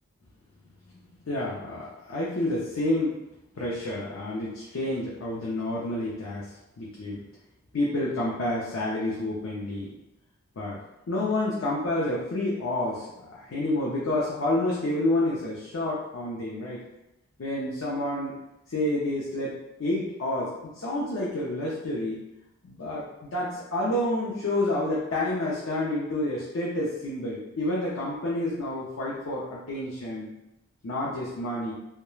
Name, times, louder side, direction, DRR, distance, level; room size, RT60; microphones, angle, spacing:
voice 1, 1.2-3.1 3.6-6.5 6.8-7.2 7.7-9.9 10.6-10.8 11.1-16.8 17.4-18.4 18.7-22.2 22.6-23.0 23.3-30.3 30.8-31.7, left 1 dB, 75° left, -5 dB, 0.5 m, -29 dB
2.3 x 2.1 x 3.0 m, 0.92 s
head